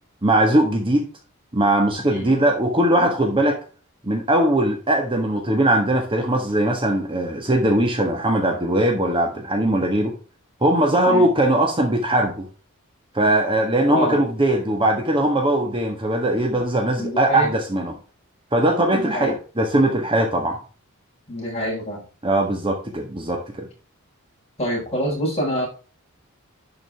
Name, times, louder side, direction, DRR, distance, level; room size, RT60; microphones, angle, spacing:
voice 1, 0.2-1.1 1.5-3.6 4.0-10.1 10.6-12.4 13.1-17.9 18.5-20.6 22.2-23.7, right 1 dB, 25° right, 2 dB, 1.5 m, -20 dB
voice 2, 13.9-14.2 17.0-17.5 18.9-19.3 21.3-22.0 24.6-25.7, equal, 30° left, -3 dB, 5.3 m, -26 dB
11.0 x 5.2 x 3.5 m, 0.36 s
head